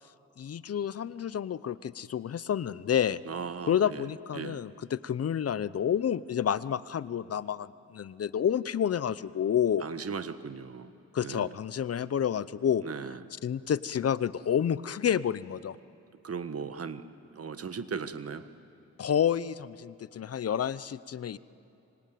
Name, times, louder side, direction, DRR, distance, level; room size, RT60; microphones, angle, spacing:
voice 1, 0.4-3.2 3.7-9.9 11.1-12.8 13.4-15.8 19.0-21.4, left 9 dB, 55° left, 18 dB, 0.7 m, -29 dB
voice 2, 3.2-4.1 4.3-4.6 9.8-10.9 11.2-11.5 12.8-13.2 16.2-17.0 17.3-18.4, right 6 dB, 55° right, 11 dB, 1.4 m, -37 dB
25.0 x 25.0 x 9.3 m, 2.9 s
cardioid pair, 80°, 29 cm